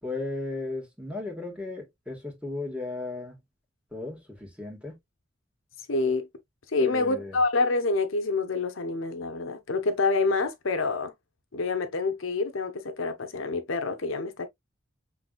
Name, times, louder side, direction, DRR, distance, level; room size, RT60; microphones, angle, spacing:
voice 1, 0.0-3.4 3.9-5.0 6.8-7.4, left 2 dB, 5° right, 1.8 m, -35 dB
voice 2, 5.9-6.3 6.7-11.1 11.5-14.5, left 3 dB, 85° left, 0.9 m, -27 dB
6.0 x 3.4 x 2.4 m
head